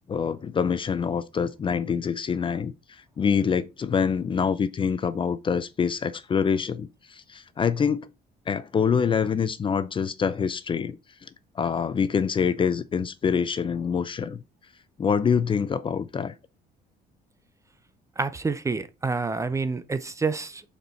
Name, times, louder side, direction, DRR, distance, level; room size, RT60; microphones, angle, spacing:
voice 1, 0.1-2.7 3.2-8.1 8.5-11.0 11.2-11.3 11.6-14.4 15.0-16.3, left 6 dB, 30° left, 0.5 m, -25 dB
voice 2, 18.2-20.6, right 4 dB, 20° right, 0.5 m, -28 dB
6.5 x 4.4 x 4.3 m
cardioid pair, 110°, 17 cm